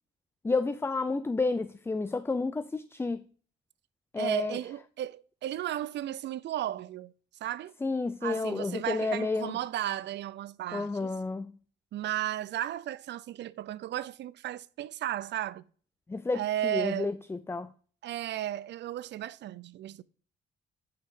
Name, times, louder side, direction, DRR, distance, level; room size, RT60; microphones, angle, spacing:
voice 1, 0.4-3.2 4.1-4.6 7.8-9.6 10.7-11.5 16.1-17.7, left 3 dB, 10° left, 0.4 m, -31 dB
voice 2, 4.2-7.1 7.4-7.7 8.2-11.1 11.9-15.6 16.3-17.2 18.0-20.0, right 12 dB, 65° right, 0.5 m, -34 dB
9.5 x 5.8 x 3.6 m
cardioid pair, 90°, 20 cm